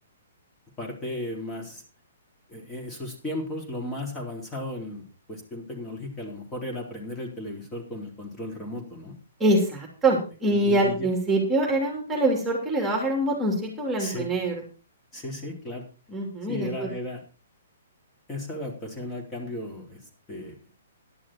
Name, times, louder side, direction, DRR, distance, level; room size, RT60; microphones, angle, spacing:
voice 1, 0.8-1.8 2.5-9.2 10.5-11.1 14.0-14.3 15.1-15.8 16.5-17.2 18.3-20.0 20.3-20.6, left 1 dB, 15° left, 1 dB, 3.7 m, -35 dB
voice 2, 9.4-14.6 16.1-16.9, right 1 dB, 10° right, 0 dB, 3.2 m, -24 dB
12.0 x 11.5 x 4.5 m, 0.34 s
figure-of-eight pair, 120°, 0 cm